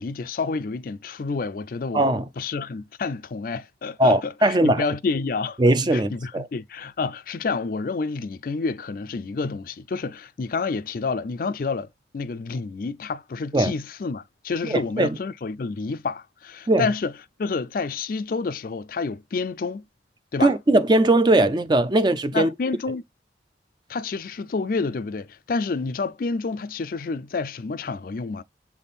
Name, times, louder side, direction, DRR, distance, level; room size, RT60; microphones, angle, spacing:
voice 1, 0.0-2.0 2.4-5.6 5.9-11.9 12.1-17.1 17.4-19.8 20.3-20.5 22.3-23.0 23.9-28.4, left 4 dB, 50° left, 0.4 m, -29 dB
voice 2, 1.9-2.2 4.0-4.8 5.6-6.5 13.5-13.7 14.7-15.2 16.7-16.9 20.4-22.5, right 1 dB, 25° right, 0.4 m, -19 dB
7.4 x 3.6 x 4.1 m
head